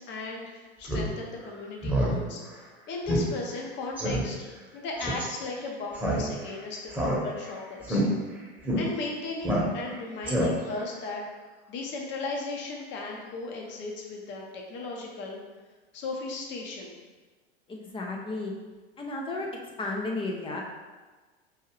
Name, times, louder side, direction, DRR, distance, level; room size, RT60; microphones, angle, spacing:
voice 1, 0.0-4.4 4.7-8.0 8.8-11.2 11.7-15.4 15.9-16.9, left 3 dB, 35° left, 0 dB, 0.8 m, -36 dB
Speech synthesizer, 0.8-1.1 1.4-1.5 1.8-2.2 2.5-2.6 3.1-3.2 3.5-3.6 4.0-4.2 5.0-5.2 5.9-6.5 6.9-7.5 7.8-8.0 8.6-8.8 9.4-9.9 10.2-10.8, equal, 5° right, 1.0 m, -27 dB
voice 2, 17.7-18.5 19.0-19.5 19.8-20.6, left 2 dB, 15° left, 0 dB, 0.5 m, -33 dB
4.8 x 2.7 x 3.0 m, 1.3 s
figure-of-eight pair, 85°, 32 cm